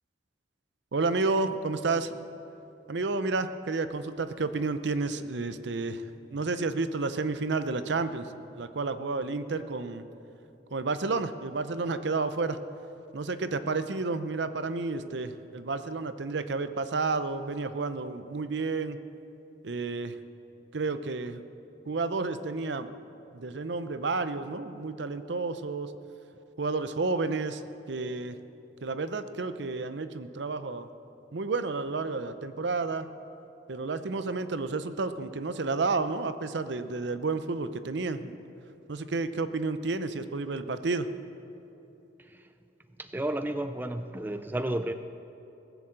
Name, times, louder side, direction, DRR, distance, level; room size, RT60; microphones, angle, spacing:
voice 1, 0.9-2.2 2.9-6.0 6.3-10.0 10.7-12.6 13.1-19.0 19.6-20.2 20.7-21.4 21.9-22.9 23.3-25.9 26.6-27.6 27.9-28.4 28.8-30.9 31.3-33.1 33.7-38.4 38.9-41.1, right 3 dB, 65° right, 11 dB, 0.6 m, -31 dB
voice 2, 43.0-44.9, right 1 dB, 10° right, 8 dB, 0.3 m, -32 dB
19.0 x 7.1 x 7.6 m, 2.9 s
head